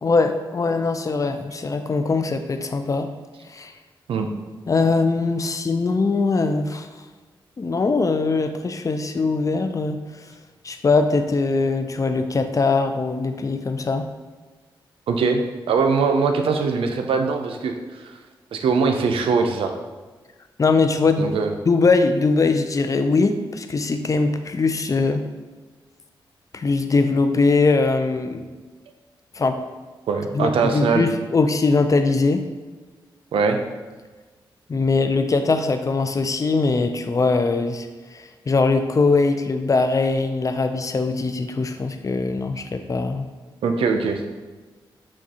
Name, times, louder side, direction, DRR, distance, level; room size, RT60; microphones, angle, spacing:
voice 1, 0.0-3.1 3.5-3.7 4.7-6.9 7.6-10.2 10.6-14.1 20.6-21.3 21.7-25.2 26.5-28.4 29.3-29.6 30.3-32.4 34.7-43.3, left 3 dB, 35° left, 7 dB, 0.4 m, -21 dB
voice 2, 15.1-15.4 15.7-18.2 18.5-19.7 21.2-21.5 30.1-31.1 33.3-33.6 43.6-44.2, right 5 dB, 80° right, 4 dB, 0.4 m, -21 dB
6.1 x 2.3 x 2.7 m, 1.3 s
cardioid pair, 50°, 9 cm